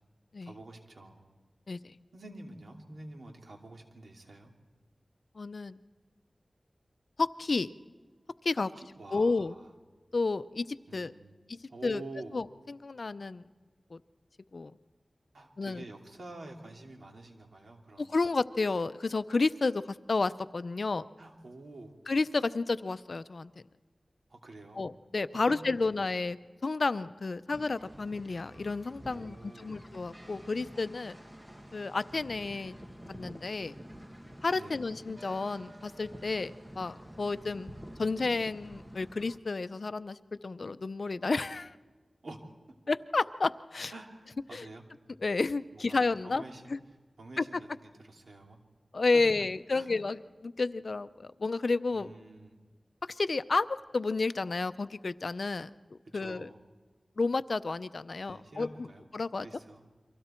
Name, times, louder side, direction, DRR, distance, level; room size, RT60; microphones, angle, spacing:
voice 1, 0.5-1.2 2.1-4.5 8.6-9.7 10.9-11.4 11.7-12.4 15.3-18.1 21.2-22.0 24.3-24.8 25.4-26.0 29.1-29.8 34.5-34.8 41.3-41.4 42.2-42.4 43.9-44.8 45.7-46.8 47.2-48.6 49.1-49.5 49.7-49.9 51.9-52.6 56.1-56.6 58.1-59.1 59.4-59.8, right 2 dB, 80° right, 2 dB, 2.9 m, -48 dB
voice 2, 5.4-5.8 7.2-7.7 8.4-8.7 9.1-9.5 10.1-11.1 11.5-12.0 12.3-13.4 13.9-14.0 14.5-14.7 15.6-15.8 18.0-21.1 22.1-23.5 24.7-26.4 26.6-31.2 31.7-32.7 33.1-33.7 34.4-37.7 38.0-40.2 40.4-41.7 42.9-43.9 44.5-44.7 45.2-46.4 46.7-46.8 47.4-47.5 48.9-52.1 53.1-56.5 57.2-58.9 59.1-59.5, left 3 dB, 65° left, 13 dB, 0.6 m, -31 dB
sound 1, 27.5-39.4, equal, 15° right, 1.6 m, -49 dB
30.0 x 24.5 x 4.5 m, 1.4 s
wide cardioid pair, 65°, 0 cm